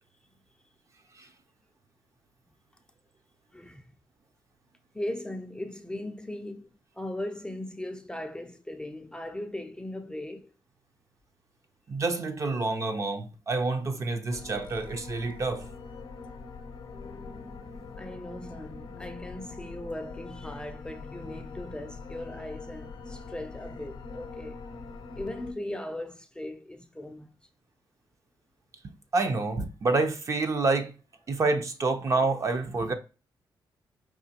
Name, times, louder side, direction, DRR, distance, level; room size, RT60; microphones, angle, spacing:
voice 1, 3.5-3.8 4.9-10.5 18.0-24.6 25.2-27.3, left 1 dB, 10° left, 0.4 m, -38 dB
voice 2, 11.9-15.7 28.8-30.9 31.3-32.9, right 3 dB, 40° right, 0.6 m, -28 dB
sound 1, 14.3-25.5, left 4 dB, 65° left, 0.7 m, -43 dB
4.9 x 3.0 x 2.8 m
cardioid pair, 110°, 8 cm